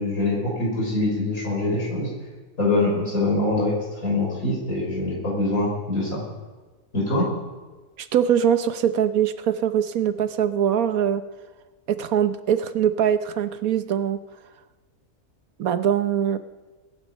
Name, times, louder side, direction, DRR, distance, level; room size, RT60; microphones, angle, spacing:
voice 1, 0.0-2.1 2.6-3.7 4.0-6.2 6.9-7.3, left 2 dB, 75° left, -3 dB, 6.5 m, -24 dB
voice 2, 8.0-11.2 11.9-14.2 15.6-16.4, right 9 dB, 85° right, 11 dB, 1.3 m, -22 dB
21.0 x 11.0 x 5.4 m, 1.3 s
omnidirectional pair, 1.5 m